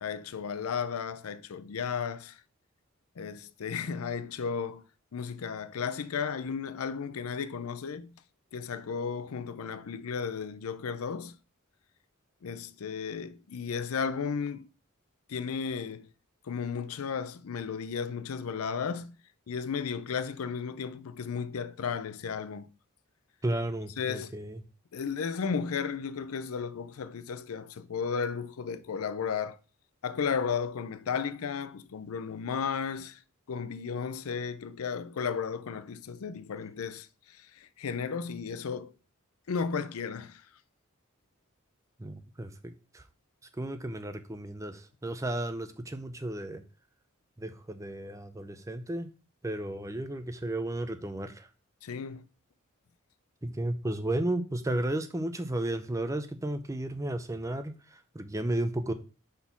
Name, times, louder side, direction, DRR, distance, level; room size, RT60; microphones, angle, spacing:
voice 1, 0.0-2.4 3.2-4.8 5.1-8.1 8.5-11.3 12.4-14.7 15.3-16.1 16.5-19.2 19.5-22.7 24.0-24.3 24.9-29.6 30.0-33.2 33.5-37.1 37.6-38.9 39.5-40.4 51.8-52.3, left 6 dB, 80° left, 0.5 m, -34 dB
voice 2, 23.4-24.6 42.0-43.0 43.6-46.6 47.4-49.1 49.4-51.5 53.4-58.9, right 1 dB, 15° right, 0.6 m, -33 dB
5.6 x 4.2 x 5.9 m
head